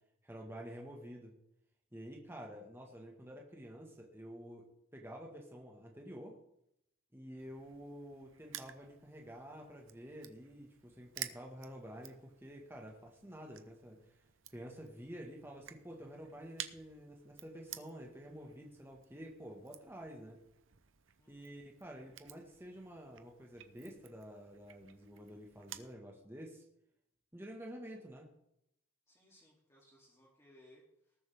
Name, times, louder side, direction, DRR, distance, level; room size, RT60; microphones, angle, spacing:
voice 1, 0.2-1.3 1.9-6.4 7.1-14.2 14.5-20.4 21.3-26.6 27.3-28.3, equal, 10° right, 0 dB, 1.7 m, -50 dB
Crushing, 7.4-25.9, right 11 dB, 65° right, 0.9 m, -53 dB
voice 2, 21.2-21.6 29.1-31.2, left 1 dB, 15° left, -5 dB, 2.9 m, -64 dB
19.5 x 7.8 x 3.6 m, 0.77 s
head